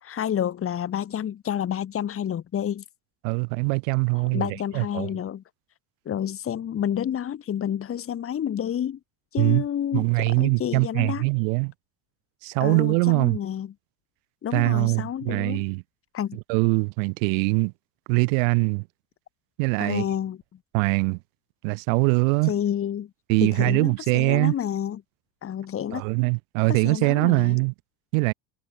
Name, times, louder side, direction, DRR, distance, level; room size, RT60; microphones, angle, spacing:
voice 1, 0.0-2.8 4.1-5.4 6.0-9.0 9.3-11.3 12.6-13.7 14.4-15.7 16.1-16.4 19.8-20.4 22.5-23.1 23.4-25.0 25.4-26.0 26.7-27.6, left 9 dB, 35° left, 3.3 m, -29 dB
voice 2, 3.2-4.5 4.7-5.1 9.4-9.6 9.9-11.7 12.4-13.4 14.5-15.8 16.5-17.7 18.1-18.9 19.6-20.0 20.7-21.2 21.6-22.5 23.3-24.5 25.9-27.7 28.1-28.3, right 35 dB, 85° right, 1.0 m, -22 dB
cardioid pair, 125°, 38 cm